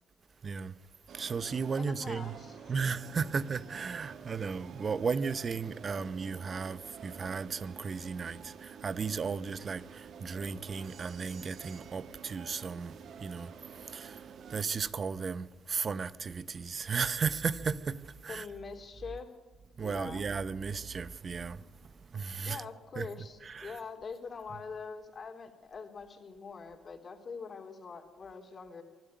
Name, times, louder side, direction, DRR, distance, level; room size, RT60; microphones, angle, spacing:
voice 1, 0.4-0.8 1.1-2.3 2.7-12.9 13.2-18.5 19.8-22.6 23.0-23.1 23.4-23.8, right 5 dB, 40° right, 0.9 m, -35 dB
sound 1, 1.1-14.6, right 7 dB, 65° right, 1.3 m, -49 dB
voice 2, 1.8-2.8 18.3-19.3 19.8-20.2 22.4-28.8, left 5 dB, 40° left, 3.2 m, -44 dB
24.0 x 12.5 x 9.2 m
cardioid pair, 90°, 0 cm